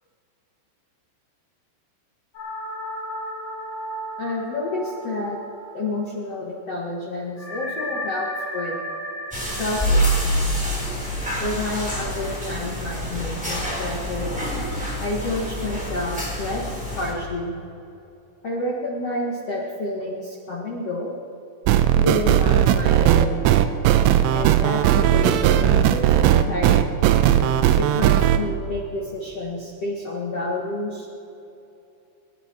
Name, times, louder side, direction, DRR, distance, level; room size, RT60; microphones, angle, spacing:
sound 1, 2.3-6.4 6.6-6.7 7.4-12.0, equal, 15° left, 4.0 m, -35 dB
voice 1, 4.2-5.4 5.7-8.3 8.5-8.8 9.5-10.5 11.4-14.3 15.0-17.5 18.4-21.1 21.9-23.4 24.3-27.0 27.8-31.1, left 2 dB, 85° left, -3 dB, 1.3 m, -29 dB
sound 2, 9.3-17.1, equal, ahead, 2.7 m, -26 dB
sound 3, 21.7-28.4, right 11 dB, 85° right, 2.7 m, -17 dB
24.0 x 10.5 x 4.5 m, 2.8 s
omnidirectional pair, 5.7 m